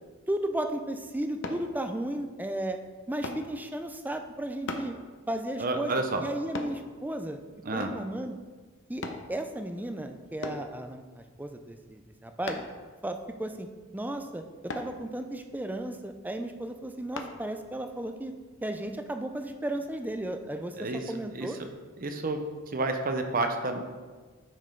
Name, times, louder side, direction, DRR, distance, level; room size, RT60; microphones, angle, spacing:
voice 1, 0.3-2.8 3.1-5.0 5.3-7.4 7.7-8.4 8.9-12.6 13.0-13.7 13.9-18.3 18.6-21.6, right 1 dB, 10° right, 6 dB, 0.4 m, -34 dB
sound 1, 1.4-1.7 3.2-3.5 4.7-4.9 6.5-6.8 7.8-8.1 9.0-9.3 10.4-10.7 12.5-12.8 14.7-14.9 17.2-17.3 17.9-18.0, left 2 dB, 55° left, 0.7 m, -36 dB
voice 2, 5.6-6.2 7.6-7.9 20.8-21.0 21.3-21.5 22.0-22.4 22.7-23.8, right 2 dB, 40° right, 6 dB, 0.7 m, -29 dB
9.3 x 5.4 x 3.7 m, 1.4 s
head